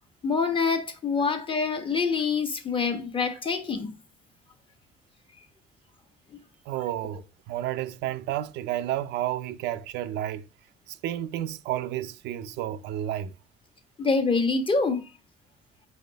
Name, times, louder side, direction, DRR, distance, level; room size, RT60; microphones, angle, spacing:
voice 1, 0.2-3.9 14.0-15.0, left 4 dB, 30° left, 1.2 m, -26 dB
voice 2, 6.7-10.4 10.9-13.3, right 12 dB, 85° right, 0.6 m, -31 dB
4.7 x 4.2 x 5.1 m
cardioid pair, 110°, 17 cm